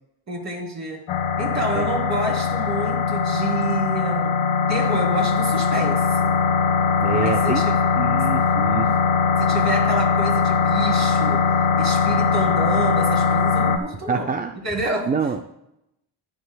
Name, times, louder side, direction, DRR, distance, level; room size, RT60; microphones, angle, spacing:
voice 1, 0.3-1.0 1.4-4.3 4.7-6.3 7.1-7.8 9.4-11.4 11.8-14.3 14.6-15.1, right 2 dB, 35° right, -1 dB, 3.3 m, -28 dB
sound 1, 1.1-13.8, left 5 dB, 75° left, 1.2 m, -20 dB
voice 2, 7.0-7.6 8.0-8.9 14.1-14.5 15.1-15.4, right 5 dB, 20° right, 6 dB, 0.4 m, -26 dB
14.0 x 10.5 x 2.3 m, 0.82 s
cardioid pair, 125°, 46 cm